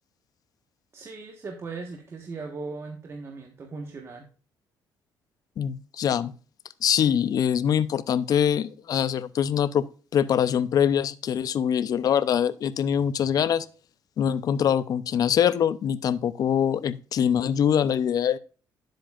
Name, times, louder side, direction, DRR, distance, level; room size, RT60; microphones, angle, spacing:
voice 1, 0.9-4.3, right 4 dB, 35° right, 1.4 m, -38 dB
voice 2, 5.6-6.3 6.8-9.9 10.1-13.7 14.2-18.4, left 8 dB, 55° left, 0.6 m, -23 dB
10.5 x 7.7 x 2.5 m
cardioid pair, 100°, 8 cm